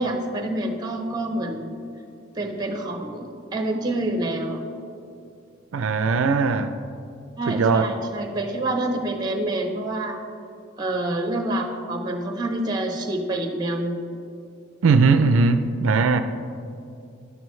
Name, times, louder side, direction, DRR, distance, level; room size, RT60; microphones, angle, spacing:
voice 1, 0.0-1.8 2.4-4.6 7.4-10.2 10.8-14.0, right 1 dB, 20° right, 4 dB, 0.8 m, -27 dB
voice 2, 5.7-6.7 7.5-7.9 14.8-16.2, right 4 dB, 70° right, 9 dB, 0.4 m, -19 dB
11.5 x 11.0 x 3.1 m, 2.6 s
head